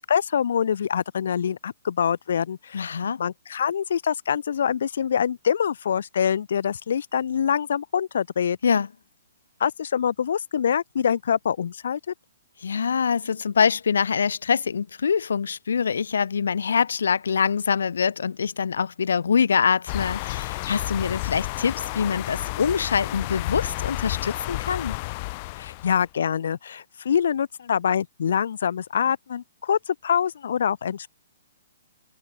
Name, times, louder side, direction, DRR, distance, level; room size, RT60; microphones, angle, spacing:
voice 1, 0.0-8.6 9.6-12.1 25.6-31.1, left 8 dB, 60° left, 5.7 m, -25 dB
voice 2, 2.7-3.2 8.6-8.9 12.6-24.9, left 6 dB, 80° left, 4.8 m, -24 dB
sound 1, 19.9-26.0, left 24 dB, 25° left, 3.1 m, -31 dB
hypercardioid pair, 175°, 0 cm